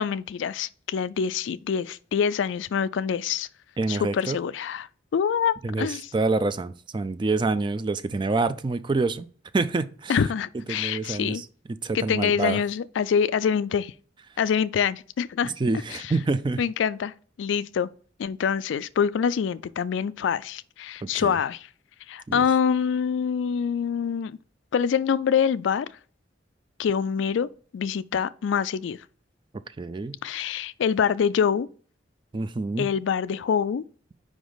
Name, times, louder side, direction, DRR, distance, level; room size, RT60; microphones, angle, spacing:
voice 1, 0.0-3.5 3.9-4.9 5.1-6.1 10.1-11.4 11.9-13.9 14.4-15.5 15.9-16.1 16.6-17.9 18.2-21.7 22.1-24.4 24.7-25.9 26.8-29.0 30.2-31.7 32.8-33.8, left 7 dB, 75° left, 0.3 m, -25 dB
voice 2, 3.8-4.4 5.6-5.9 6.1-9.3 9.5-10.2 10.7-11.5 11.8-12.6 15.4-16.6 21.0-21.4 22.3-22.4 29.8-30.2 32.3-32.9, right 3 dB, 25° right, 0.3 m, -27 dB
5.1 x 5.0 x 3.9 m
head